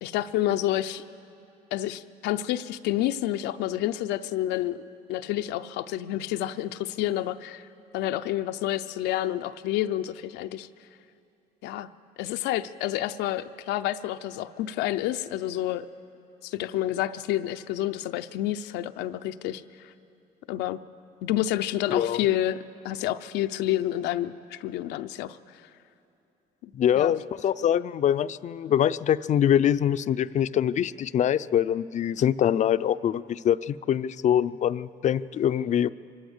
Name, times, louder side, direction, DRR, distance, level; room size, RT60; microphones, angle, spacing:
voice 1, 0.0-1.0 1.7-4.8 5.1-7.6 7.9-10.7 11.6-11.9 12.2-15.8 16.4-19.9 20.5-20.8 21.2-25.6 26.6-27.2, left 13 dB, 90° left, 9 dB, 0.6 m, -29 dB
voice 2, 26.7-35.9, left 10 dB, 45° left, 16 dB, 0.4 m, -24 dB
24.5 x 13.0 x 8.1 m, 2.7 s
cardioid pair, 110°, 17 cm